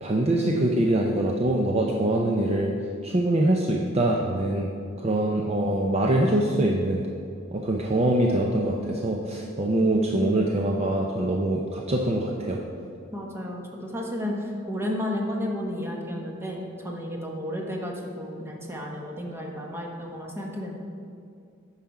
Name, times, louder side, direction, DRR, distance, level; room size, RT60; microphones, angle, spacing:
voice 1, 0.0-2.7 3.0-4.7 5.0-7.0 7.5-12.6, right 1 dB, 30° right, 0 dB, 0.6 m, -24 dB
voice 2, 13.1-20.8, left 1 dB, 10° right, -1 dB, 1.1 m, -32 dB
9.3 x 5.8 x 4.8 m, 2.4 s
head